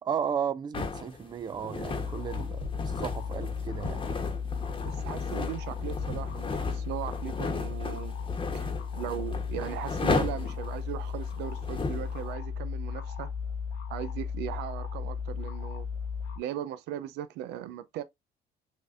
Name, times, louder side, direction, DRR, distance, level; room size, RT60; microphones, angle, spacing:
voice 1, 0.0-4.0, right 8 dB, 25° right, 0.4 m, -34 dB
sound 1, 0.7-12.1, left 3 dB, 30° left, 1.1 m, -35 dB
sound 2, 1.9-16.4, left 6 dB, 85° left, 1.2 m, -35 dB
voice 2, 4.8-8.2 8.5-13.3 13.9-15.9 16.4-18.0, right 12 dB, 90° right, 0.5 m, -38 dB
6.3 x 2.5 x 2.5 m
cardioid pair, 110°, 17 cm